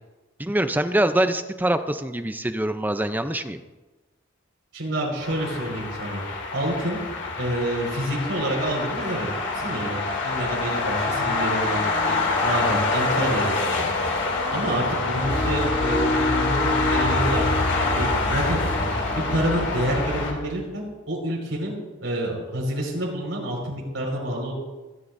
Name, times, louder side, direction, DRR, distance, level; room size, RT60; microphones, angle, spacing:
voice 1, 0.4-3.6, right 1 dB, 10° right, 9 dB, 0.6 m, -24 dB
voice 2, 4.7-6.2 6.5-7.0 7.4-9.3 9.5-10.0 10.2-13.9 14.5-18.6 19.1-21.7 22.0-24.5, right 1 dB, 90° right, -3 dB, 5.1 m, -28 dB
sound 1, 5.2-20.3, left 3 dB, 65° left, 2.8 m, -26 dB
sound 2, 15.2-20.6, left 1 dB, 10° left, 2.8 m, -28 dB
27.0 x 10.5 x 2.7 m, 1.2 s
head